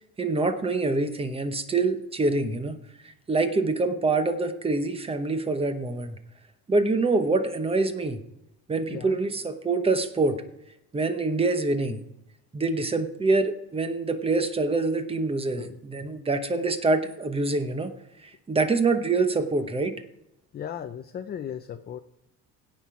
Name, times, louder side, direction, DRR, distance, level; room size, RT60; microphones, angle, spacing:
voice 1, 0.2-2.8 3.3-6.2 6.7-8.2 8.7-10.4 10.9-12.0 12.5-17.9 18.5-19.9, right 3 dB, 15° right, 9 dB, 0.8 m, -25 dB
voice 2, 8.9-9.2 15.6-15.8 20.5-22.0, left 9 dB, 25° left, 7 dB, 0.4 m, -36 dB
17.0 x 5.9 x 4.8 m, 0.86 s
cardioid pair, 170°, 38 cm